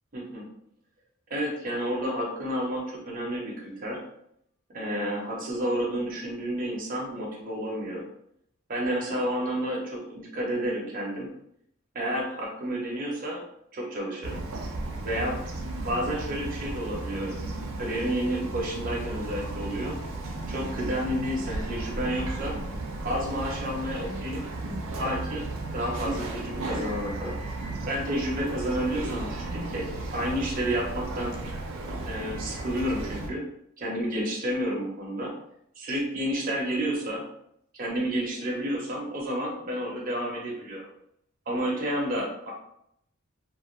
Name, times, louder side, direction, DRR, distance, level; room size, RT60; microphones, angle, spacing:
voice 1, 0.1-0.5 1.3-4.0 4.7-8.0 8.7-11.3 11.9-13.4 13.7-14.4 15.0-15.4 15.8-20.0 20.5-22.6 23.0-24.5 24.9-27.4 27.9-31.4 32.1-33.5 33.8-35.3 35.8-37.3 37.7-40.9 41.5-42.5, equal, 40° right, -3 dB, 0.7 m, -30 dB
Bird vocalization bird call bird song, 14.2-33.3, right 2 dB, 90° right, 0.6 m, -34 dB
2.4 x 2.3 x 3.1 m, 0.74 s
head